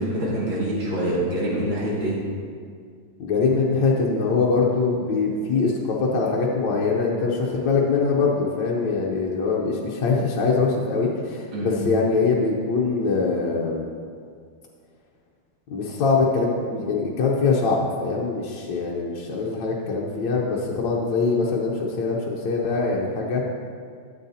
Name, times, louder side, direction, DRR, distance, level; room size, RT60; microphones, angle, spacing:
voice 1, 0.0-2.2 11.5-11.8, right 1 dB, 75° right, -5 dB, 2.8 m, -25 dB
voice 2, 3.2-13.9 15.7-23.4, left 4 dB, 70° left, -3 dB, 1.5 m, -23 dB
13.0 x 8.2 x 2.8 m, 2.1 s
omnidirectional pair, 2.2 m